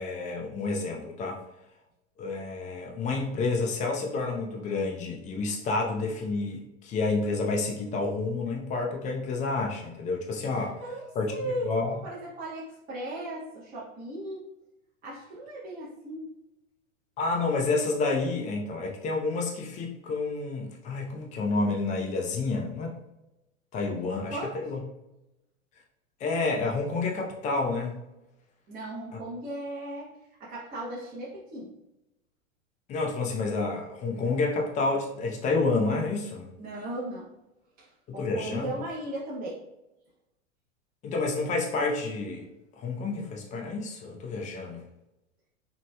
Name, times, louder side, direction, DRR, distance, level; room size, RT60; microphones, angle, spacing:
voice 1, 0.0-1.4 2.2-10.8 11.2-12.0 17.2-23.0 23.7-24.8 26.2-28.0 32.9-36.5 38.1-38.8 41.0-42.5 42.8-44.8, left 3 dB, 20° left, 0 dB, 0.4 m, -29 dB
voice 2, 10.5-11.7 12.0-14.5 15.0-16.4 24.0-24.6 28.7-30.1 30.4-31.7 36.6-37.3 37.8-39.6, right 1 dB, 20° right, -7 dB, 0.7 m, -37 dB
3.0 x 2.9 x 2.2 m, 0.94 s
hypercardioid pair, 105°, 39 cm